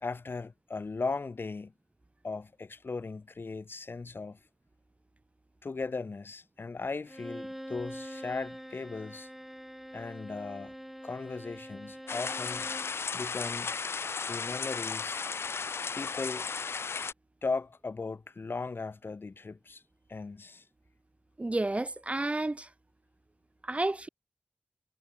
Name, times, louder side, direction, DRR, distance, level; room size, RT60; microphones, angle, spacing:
voice 1, 0.0-1.7 2.2-4.4 5.6-9.3 9.9-10.7 11.0-12.7 13.1-13.7 14.3-15.3 15.9-16.4 17.4-19.8 20.1-20.6, left 4 dB, 60° left, 2.2 m, -37 dB
Bowed string instrument, 7.1-13.0, equal, 5° right, 5.8 m, -44 dB
sound 1, 12.1-17.1, left 5 dB, 85° left, 1.9 m, -35 dB
voice 2, 21.4-22.7 23.6-24.1, right 2 dB, 30° right, 1.2 m, -31 dB
cardioid pair, 50°, 4 cm